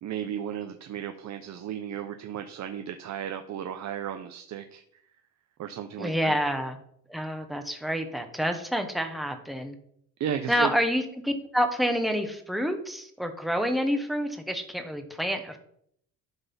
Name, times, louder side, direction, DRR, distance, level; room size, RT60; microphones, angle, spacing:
voice 1, 0.0-4.8 5.6-6.4 10.2-10.7, right 9 dB, 55° right, 7 dB, 0.6 m, -34 dB
voice 2, 6.0-6.8 7.1-9.8 10.5-15.6, equal, ahead, 5 dB, 1.0 m, -28 dB
11.5 x 4.1 x 5.4 m, 0.69 s
cardioid pair, 130°, 33 cm